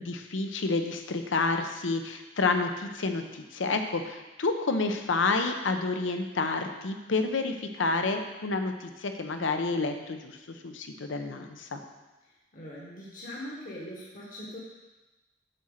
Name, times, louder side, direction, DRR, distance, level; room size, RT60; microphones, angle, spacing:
voice 1, 0.0-10.4 10.6-11.8, left 3 dB, 75° left, 6 dB, 0.7 m, -29 dB
voice 2, 12.5-14.6, left 1 dB, 45° left, -5 dB, 1.3 m, -41 dB
7.6 x 4.3 x 6.5 m, 1.1 s
head